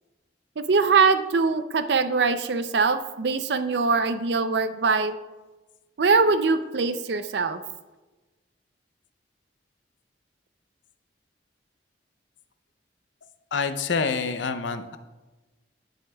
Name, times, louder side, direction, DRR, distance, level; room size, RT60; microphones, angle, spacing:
voice 1, 0.6-5.1 6.0-7.6, right 4 dB, 65° right, 11 dB, 0.5 m, -22 dB
voice 2, 13.5-15.0, left 5 dB, 80° left, 10 dB, 0.6 m, -27 dB
16.0 x 6.3 x 2.3 m, 1.2 s
head